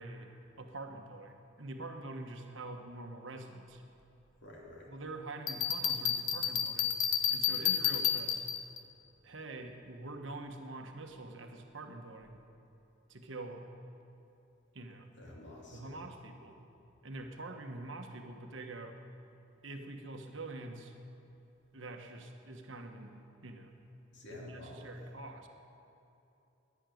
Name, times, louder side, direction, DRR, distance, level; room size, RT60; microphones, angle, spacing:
voice 1, 0.0-3.8 4.9-6.9 7.3-8.4 9.2-12.4 13.1-13.6 14.7-15.1 15.7-16.6 17.0-19.0 19.6-20.9 21.7-23.7 24.3-25.5, right 2 dB, 65° right, 4 dB, 1.3 m, -45 dB
voice 2, 4.4-4.9 15.2-16.0 24.1-25.1, left 1 dB, 60° left, -3 dB, 3.1 m, -50 dB
Bell, 5.5-8.8, left 8 dB, 85° left, 1.1 m, -31 dB
12.0 x 10.5 x 9.3 m, 2.9 s
head